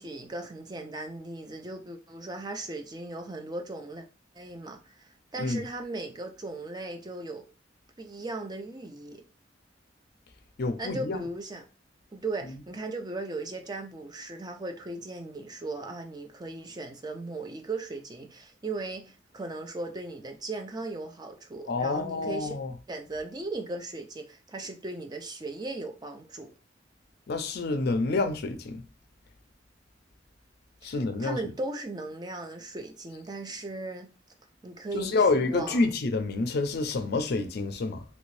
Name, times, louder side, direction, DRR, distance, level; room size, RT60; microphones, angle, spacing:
voice 1, 0.0-4.1 4.3-7.5 8.0-9.2 10.8-11.7 12.1-22.6 22.9-26.5 30.8-30.9 31.2-34.1 34.6-35.9, right 2 dB, 20° right, 0.5 m, -37 dB
voice 2, 10.6-11.2 21.7-22.7 27.3-28.8 30.8-31.4 34.9-38.0, left 3 dB, 60° left, 0.4 m, -28 dB
3.1 x 2.6 x 3.1 m
head